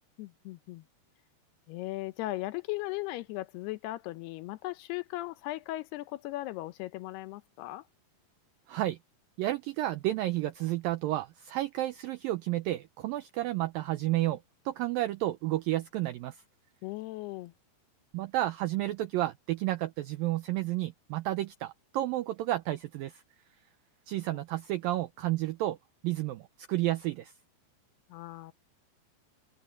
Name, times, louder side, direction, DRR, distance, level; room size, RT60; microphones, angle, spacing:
voice 1, 0.2-0.8 1.7-7.9 16.8-17.5 24.3-24.4 28.1-28.5, left 17 dB, 80° left, 2.6 m, -37 dB
voice 2, 8.7-9.0 9.4-14.4 14.7-16.4 18.1-23.2 24.1-25.8 26.0-27.3, right 15 dB, 90° right, 2.0 m, -31 dB
omnidirectional pair, 5.0 m